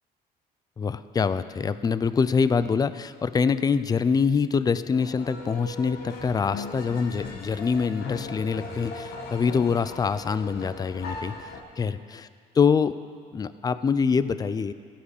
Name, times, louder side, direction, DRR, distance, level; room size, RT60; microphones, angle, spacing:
voice 1, 0.8-11.5 11.8-12.0 12.6-13.0 13.3-14.7, left 5 dB, 20° left, 14 dB, 0.4 m, -25 dB
sound 1, 4.9-11.6, left 3 dB, 70° left, 1.5 m, -38 dB
15.0 x 8.7 x 4.9 m, 2.1 s
cardioid pair, 110°, 17 cm